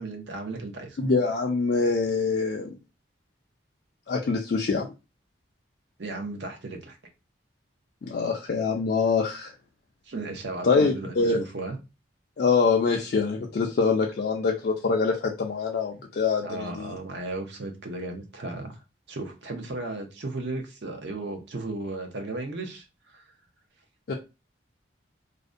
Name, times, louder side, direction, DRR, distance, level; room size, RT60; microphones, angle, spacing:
voice 1, 0.0-1.0 6.0-7.0 10.1-11.8 16.4-18.7 19.1-23.2, right 2 dB, 60° right, 0.6 m, -35 dB
voice 2, 1.0-2.7 4.1-4.9 8.0-9.5 10.6-11.4 12.4-16.9 24.1-24.2, left 4 dB, 50° left, 0.3 m, -24 dB
2.5 x 2.1 x 2.4 m
head